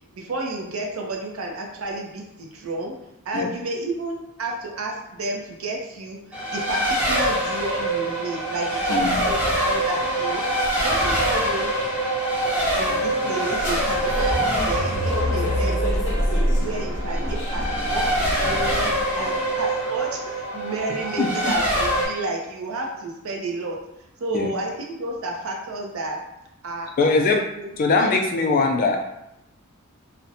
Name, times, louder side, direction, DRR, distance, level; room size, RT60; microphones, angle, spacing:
voice 1, 0.1-2.9 3.3-10.4 10.8-11.7 12.7-16.1 16.5-18.9 19.2-23.8 24.2-26.2 26.6-26.9 27.3-27.7 27.9-28.2 28.7-28.8, right 2 dB, 85° right, 1 dB, 0.5 m, -31 dB
Race car auto racing, 6.3-22.1, right 1 dB, 5° right, 0.7 m, -25 dB
sound 1, 13.6-19.1, equal, 60° left, 0.8 m, -26 dB
voice 2, 27.0-27.4 27.8-29.0, left 3 dB, 45° left, 3 dB, 0.3 m, -21 dB
2.5 x 2.0 x 2.7 m, 0.85 s
head